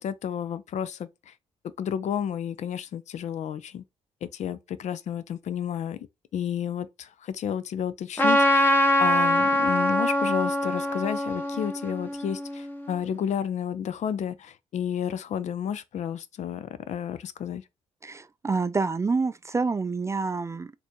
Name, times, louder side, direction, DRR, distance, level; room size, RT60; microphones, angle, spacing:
voice 1, 0.0-1.3 1.8-3.8 4.2-6.0 6.3-8.7 9.0-17.6, left 8 dB, 50° left, 0.4 m, -31 dB
Trumpet, 8.2-12.8, left 1 dB, 15° left, 1.0 m, -23 dB
voice 2, 18.0-20.8, right 4 dB, 20° right, 0.3 m, -27 dB
4.1 x 2.7 x 3.0 m
hypercardioid pair, 45°, 15 cm